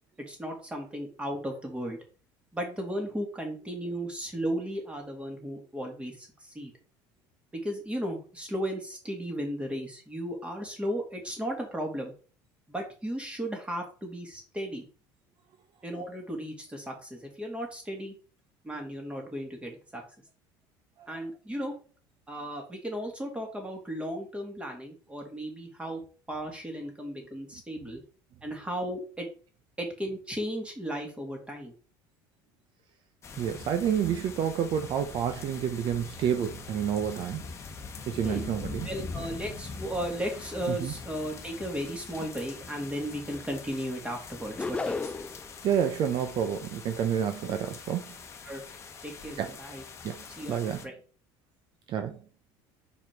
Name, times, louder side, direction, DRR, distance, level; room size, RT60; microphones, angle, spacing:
voice 1, 0.3-2.0 2.5-6.7 7.5-12.1 12.7-14.9 15.8-18.1 18.6-20.0 21.1-21.7 22.3-26.0 26.3-28.0 28.4-29.3 29.8-31.7 38.2-38.4 38.8-45.1 47.4-47.5 48.4-48.6 49.0-49.8 50.4-50.9, equal, 10° right, 2.5 m, -35 dB
sound 1, 33.2-50.9, left 4 dB, 30° left, 1.2 m, -43 dB
voice 2, 33.4-37.4 38.1-38.9 40.7-40.9 45.6-48.1 49.4-49.6 50.0-50.8 51.9-52.2, right 8 dB, 50° right, 0.8 m, -29 dB
sound 2, 44.6-45.5, left 3 dB, 10° left, 0.5 m, -32 dB
5.4 x 4.8 x 4.6 m
cardioid pair, 120°, 10 cm